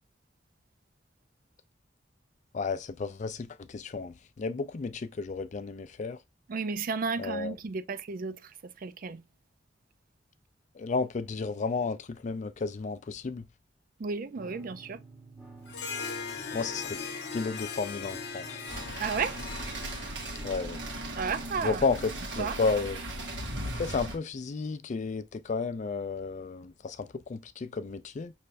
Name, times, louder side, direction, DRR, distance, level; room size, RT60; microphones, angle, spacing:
voice 1, 2.5-6.2 7.2-7.5 10.8-13.5 16.5-17.0 17.3-18.6 20.4-20.8 21.6-23.0 23.7-28.3, left 4 dB, 40° left, 0.4 m, -32 dB
voice 2, 6.5-9.2 14.0-15.0 19.0-19.4 21.2-21.8 22.4-22.6, right 5 dB, 50° right, 0.4 m, -33 dB
sound 1, 14.4-22.4, right 3 dB, 10° right, 0.9 m, -50 dB
Harp, 15.7-21.4, left 5 dB, 65° left, 0.9 m, -40 dB
sound 2, 18.7-24.2, right 1 dB, 80° right, 1.4 m, -37 dB
5.6 x 3.2 x 2.5 m
head